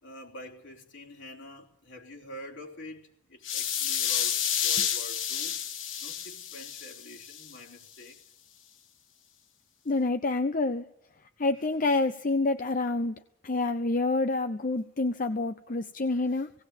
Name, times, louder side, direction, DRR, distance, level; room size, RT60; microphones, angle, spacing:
voice 1, 0.0-5.6 6.0-8.2 11.6-11.7 16.1-16.5, left 1 dB, 70° left, 3.5 m, -47 dB
sound 1, 3.4-7.5, left 9 dB, 90° left, 1.5 m, -30 dB
voice 2, 9.9-10.8 11.4-13.1 13.4-16.5, left 2 dB, 45° left, 0.7 m, -27 dB
18.0 x 17.5 x 8.4 m
head